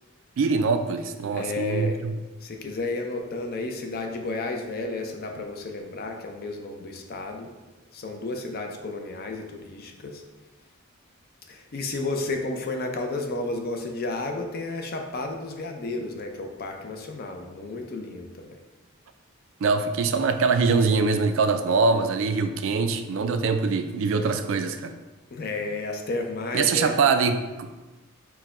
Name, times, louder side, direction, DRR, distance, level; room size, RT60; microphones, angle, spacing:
voice 1, 0.4-2.1 19.6-24.9 26.5-27.8, right 4 dB, 60° right, 8 dB, 0.3 m, -23 dB
voice 2, 1.3-2.0 2.4-7.5 7.9-10.2 11.5-18.6 25.3-26.9, left 2 dB, 45° left, 4 dB, 0.5 m, -32 dB
4.5 x 2.2 x 4.7 m, 1.2 s
head